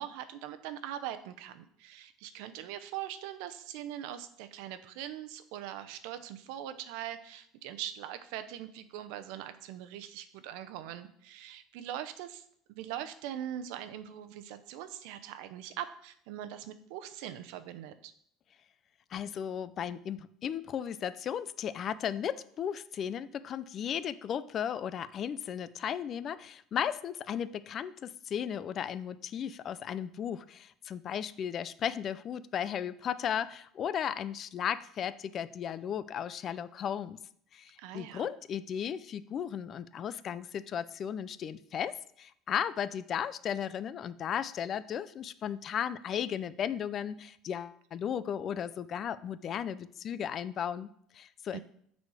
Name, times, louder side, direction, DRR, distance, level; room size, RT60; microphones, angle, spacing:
voice 1, 0.0-18.1 37.8-38.3 51.5-51.6, right 11 dB, 75° right, 10 dB, 0.7 m, -42 dB
voice 2, 19.1-37.2 37.5-51.6, left 8 dB, 40° left, 15 dB, 0.4 m, -35 dB
9.3 x 4.2 x 4.8 m, 0.67 s
cardioid pair, 130°, 0 cm